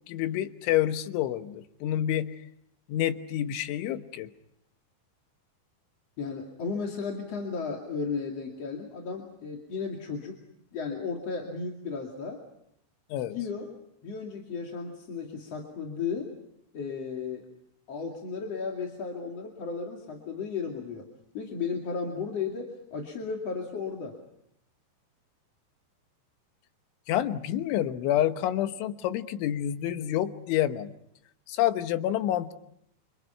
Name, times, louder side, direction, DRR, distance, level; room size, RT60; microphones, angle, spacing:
voice 1, 0.1-2.4 2.9-4.3 13.1-13.4 27.1-30.9 31.5-32.5, left 12 dB, 85° left, 9 dB, 3.6 m, -28 dB
voice 2, 6.2-10.4 10.7-12.4 13.1-13.7 14.0-16.3 16.7-17.4 17.9-21.1 21.3-24.2, left 5 dB, 40° left, 0 dB, 2.9 m, -34 dB
29.5 x 27.0 x 5.7 m, 0.74 s
omnidirectional pair, 5.3 m